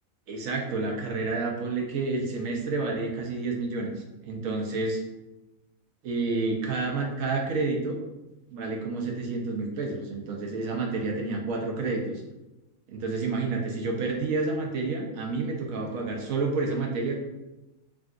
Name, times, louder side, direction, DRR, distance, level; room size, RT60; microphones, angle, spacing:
voice 1, 0.3-5.0 6.0-8.0 8.5-12.2 12.9-17.2, right 3 dB, 70° right, 1 dB, 1.0 m, -29 dB
3.5 x 2.4 x 2.4 m, 1.0 s
omnidirectional pair, 1.5 m